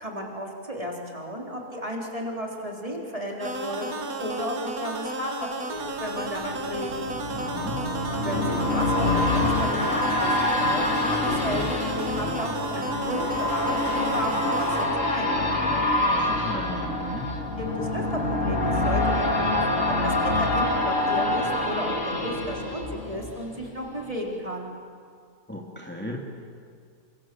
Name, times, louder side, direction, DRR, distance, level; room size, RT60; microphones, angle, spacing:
voice 1, 0.0-6.9 8.2-15.7 17.6-24.7, equal, 25° right, -1 dB, 3.8 m, -34 dB
sound 1, 3.4-14.9, right 2 dB, 80° right, 2.5 m, -33 dB
sound 2, 5.9-23.7 24.1-24.2, left 2 dB, 60° left, 3.4 m, -26 dB
voice 2, 7.3-7.8 16.1-17.3 25.5-26.2, left 1 dB, 5° left, -1 dB, 2.8 m, -36 dB
30.0 x 25.5 x 7.6 m, 2.2 s
omnidirectional pair, 1.5 m